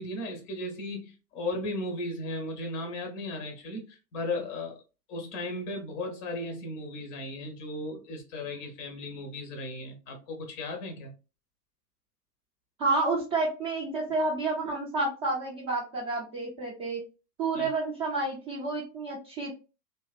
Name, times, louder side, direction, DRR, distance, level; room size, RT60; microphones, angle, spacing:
voice 1, 0.0-4.8 5.1-11.1 17.5-17.7, left 2 dB, 20° left, 0.6 m, -36 dB
voice 2, 12.8-17.0 17.4-19.5, right 3 dB, 25° right, 0.7 m, -30 dB
2.7 x 2.3 x 2.2 m
figure-of-eight pair, 105°, 49 cm